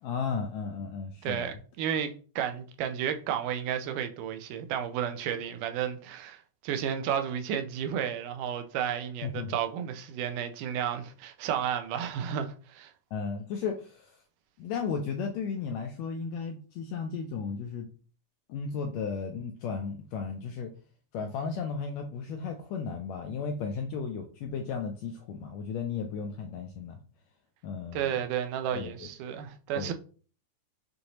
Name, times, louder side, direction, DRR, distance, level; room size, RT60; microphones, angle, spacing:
voice 1, 0.0-1.5 9.2-9.6 13.1-14.2 14.6-17.9 18.5-20.7 21.1-27.0 27.6-28.1 28.7-29.1 29.7-29.9, left 5 dB, 80° left, 1.5 m, -34 dB
voice 2, 1.2-12.9 27.9-29.9, right 9 dB, 85° right, 2.2 m, -32 dB
6.4 x 2.6 x 2.9 m
omnidirectional pair, 3.6 m